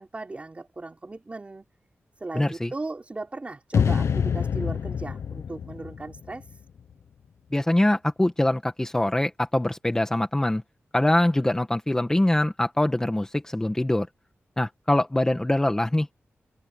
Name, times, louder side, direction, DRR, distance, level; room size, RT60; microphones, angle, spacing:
voice 1, 0.0-1.6 2.2-6.4, right 2 dB, 30° right, 4.6 m, -37 dB
voice 2, 2.3-2.7 7.5-10.6 10.9-14.1 14.6-16.1, left 1 dB, 10° left, 1.5 m, -23 dB
sound 1, 3.7-6.9, left 7 dB, 85° left, 0.9 m, -26 dB
wide cardioid pair, 120°, 5 cm